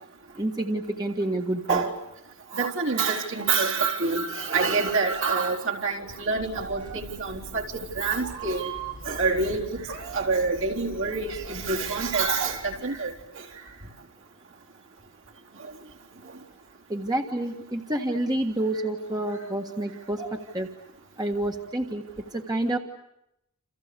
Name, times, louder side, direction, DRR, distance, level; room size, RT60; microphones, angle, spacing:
voice 1, 0.3-1.8 16.9-20.7 21.2-22.0 22.3-22.8, right 1 dB, 20° right, 3 dB, 1.6 m, -28 dB
voice 2, 2.5-8.7 9.1-9.9 10.1-13.1 20.2-20.3, right 4 dB, 60° right, 0 dB, 4.1 m, -26 dB
Meow, 6.4-12.8, right 4 dB, 80° right, 3.9 m, -41 dB
29.0 x 28.5 x 6.8 m, 0.81 s
head